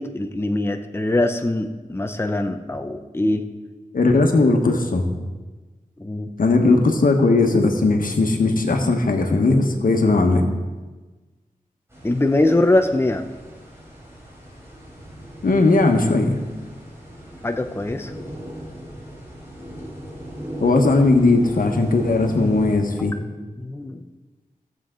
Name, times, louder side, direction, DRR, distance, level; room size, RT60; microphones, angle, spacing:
voice 1, 0.0-3.5 6.0-6.3 12.0-13.2 17.4-18.1 23.6-24.0, left 2 dB, 15° left, 6 dB, 0.7 m, -22 dB
voice 2, 3.9-5.1 6.4-10.4 15.4-16.4 20.6-23.2, left 3 dB, 80° left, 3 dB, 1.3 m, -18 dB
sound 1, 11.9-22.8, equal, 15° right, 4.3 m, -37 dB
16.0 x 7.4 x 3.8 m, 1.3 s
wide cardioid pair, 55°, 14 cm